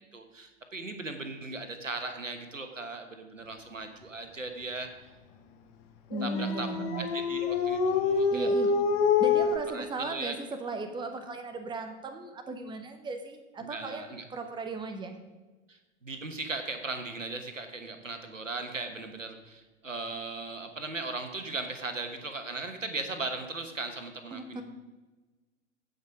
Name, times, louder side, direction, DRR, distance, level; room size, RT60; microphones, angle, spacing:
voice 1, 0.1-4.9 6.2-8.5 9.7-10.3 13.6-14.2 15.7-24.6, right 3 dB, 85° right, 6 dB, 1.3 m, -38 dB
Dog, 6.1-9.6, left 5 dB, 40° left, 1.3 m, -26 dB
voice 2, 6.1-7.0 8.3-8.7 9.2-15.1 24.3-24.6, right 3 dB, 10° right, 7 dB, 1.0 m, -36 dB
16.0 x 5.3 x 5.0 m, 1.2 s
figure-of-eight pair, 90°, 37 cm